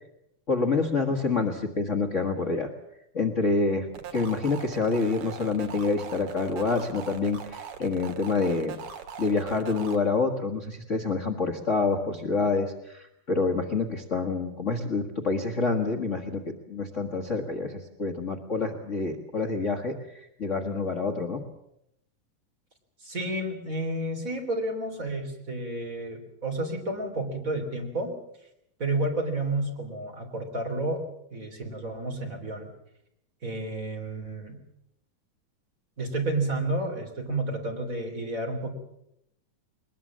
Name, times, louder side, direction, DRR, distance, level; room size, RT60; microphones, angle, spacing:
voice 1, 0.5-2.7 3.1-3.9 4.1-8.7 9.2-21.4, left 4 dB, 80° left, 5 dB, 0.6 m, -27 dB
sound 1, 3.9-10.0, right 7 dB, 70° right, 3.4 m, -40 dB
voice 2, 23.0-28.1 28.8-31.0 31.3-32.7 33.4-34.6 36.0-38.7, right 2 dB, 25° right, 3 dB, 3.4 m, -31 dB
21.5 x 20.5 x 7.4 m, 0.77 s
omnidirectional pair, 4.1 m